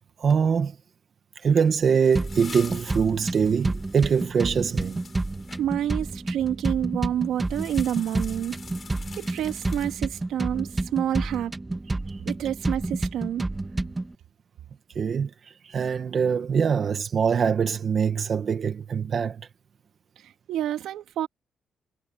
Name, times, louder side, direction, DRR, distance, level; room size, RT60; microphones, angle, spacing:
voice 1, 0.2-0.8 1.4-5.0 12.1-12.2 14.9-19.5, right 6 dB, 40° right, 1.1 m, -23 dB
sound 1, 1.6-5.6 7.4-10.3, left 5 dB, 30° left, 5.8 m, -46 dB
sound 2, 2.1-14.1, right 2 dB, 15° right, 2.0 m, -30 dB
voice 2, 5.6-8.6 9.2-11.5 12.2-13.5 20.2-21.3, right 11 dB, 85° right, 3.0 m, -28 dB
cardioid pair, 160°, 0 cm